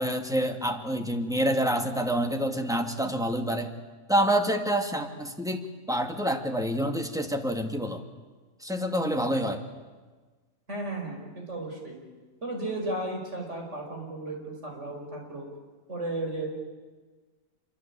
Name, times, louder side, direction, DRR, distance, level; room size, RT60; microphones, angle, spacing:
voice 1, 0.0-3.7 4.1-8.0 8.6-9.6, equal, ahead, 4 dB, 2.1 m, -27 dB
voice 2, 10.7-11.9 12.4-15.5 15.9-16.5, right 2 dB, 55° right, 1 dB, 6.1 m, -34 dB
26.5 x 23.5 x 8.9 m, 1.4 s
omnidirectional pair, 1.5 m